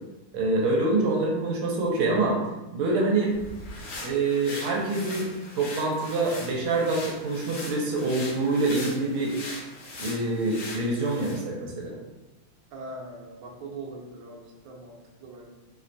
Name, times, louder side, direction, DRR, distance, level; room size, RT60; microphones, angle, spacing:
voice 1, 0.3-2.4 2.7-3.3 4.0-5.3 5.6-9.4 10.0-12.0, right 2 dB, 85° right, -2 dB, 1.6 m, -26 dB
sound 1, 3.2-11.5, left 2 dB, 75° left, 1.6 m, -40 dB
voice 2, 12.7-15.5, right 2 dB, 70° right, -3 dB, 1.3 m, -41 dB
4.4 x 2.2 x 2.6 m, 1.0 s
omnidirectional pair, 2.4 m